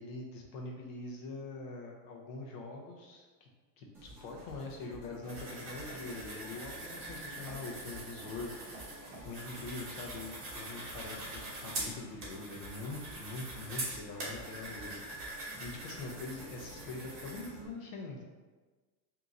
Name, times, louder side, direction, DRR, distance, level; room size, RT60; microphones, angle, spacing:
voice 1, 0.0-3.5 3.8-8.5 9.2-14.9 15.2-18.2, left 3 dB, 55° left, 0 dB, 0.8 m, -43 dB
sound 1, 3.9-17.7, right 2 dB, 5° right, 1.2 m, -53 dB
sound 2, 5.3-17.5, right 2 dB, 25° right, 1.3 m, -43 dB
3.7 x 2.8 x 3.8 m, 1.3 s
supercardioid pair, 155°, 49 cm